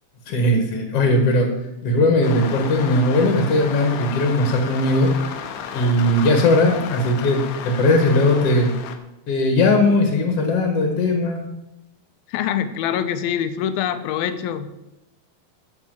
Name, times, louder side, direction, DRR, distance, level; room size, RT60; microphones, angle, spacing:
voice 1, 0.3-1.5 1.8-5.1 5.7-8.7 9.3-11.4, left 1 dB, 55° left, 3 dB, 1.9 m, -18 dB
sound 1, 2.2-9.0, left 8 dB, 75° left, 1.8 m, -33 dB
voice 2, 12.3-14.7, left 9 dB, 90° left, 11 dB, 2.6 m, -24 dB
13.5 x 4.6 x 7.7 m, 0.94 s
omnidirectional pair, 4.2 m